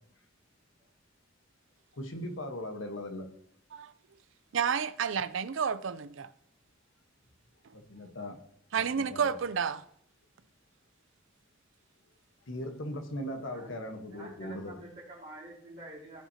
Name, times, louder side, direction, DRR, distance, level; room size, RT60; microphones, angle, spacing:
voice 1, 1.9-3.3 7.7-8.4 8.8-9.3 12.5-14.8, left 1 dB, 70° left, 1.3 m, -39 dB
voice 2, 4.5-6.3 8.7-9.8, right 7 dB, 75° right, 0.5 m, -30 dB
voice 3, 14.1-16.2, right 1 dB, 50° right, 2.4 m, -47 dB
15.5 x 5.7 x 2.9 m
head